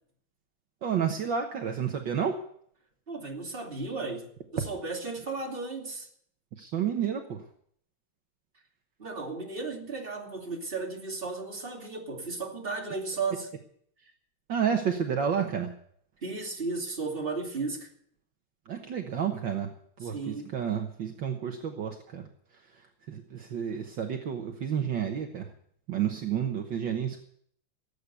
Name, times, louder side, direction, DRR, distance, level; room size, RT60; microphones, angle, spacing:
voice 1, 0.8-2.4 6.6-7.5 14.0-14.1 14.5-15.7 18.7-22.3 22.5-25.5 25.9-27.2, right 8 dB, 65° right, 1.8 m, -31 dB
voice 2, 3.1-6.1 9.0-13.5 16.2-17.9 20.1-20.5, right 3 dB, 25° right, 2.8 m, -35 dB
17.5 x 8.5 x 8.1 m
omnidirectional pair, 2.3 m